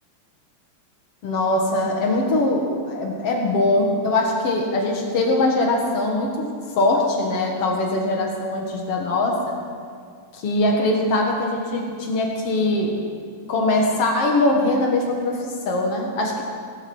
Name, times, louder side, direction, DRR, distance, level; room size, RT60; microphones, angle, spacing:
voice 1, 1.2-6.5 6.8-9.5 10.3-12.9 13.5-16.4, left 2 dB, 75° left, 0 dB, 1.3 m, -22 dB
17.5 x 8.4 x 7.1 m, 2.1 s
omnidirectional pair, 5.0 m